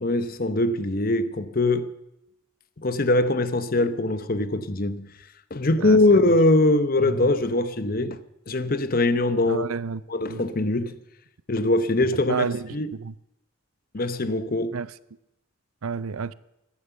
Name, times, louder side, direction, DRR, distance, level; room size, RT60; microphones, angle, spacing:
voice 1, 0.0-1.9 2.8-5.1 5.5-8.2 8.5-9.7 10.1-11.0 11.5-12.5 12.7-12.9 13.9-14.7, left 2 dB, 40° left, 0.8 m, -22 dB
voice 2, 9.5-10.0 10.3-10.4 12.3-13.1 14.7-14.9 15.8-16.3, right 5 dB, 80° right, 0.5 m, -30 dB
15.5 x 11.5 x 6.8 m
head